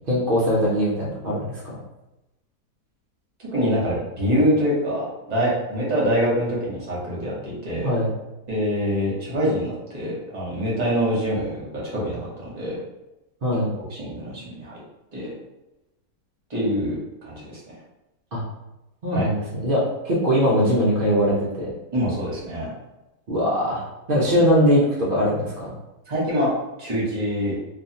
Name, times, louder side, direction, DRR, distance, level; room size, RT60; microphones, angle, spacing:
voice 1, 0.1-1.6 7.8-8.1 13.4-13.7 18.3-18.4 19.0-21.7 23.3-23.8 24.1-25.7, equal, 80° right, -6 dB, 0.4 m, -21 dB
voice 2, 3.5-7.9 8.5-12.8 13.9-14.8 15.1-15.3 16.5-17.6 19.1-19.3 21.9-22.7 26.1-26.5 26.8-27.6, equal, 35° right, -5 dB, 0.7 m, -25 dB
2.6 x 2.5 x 2.7 m, 0.97 s
omnidirectional pair, 1.8 m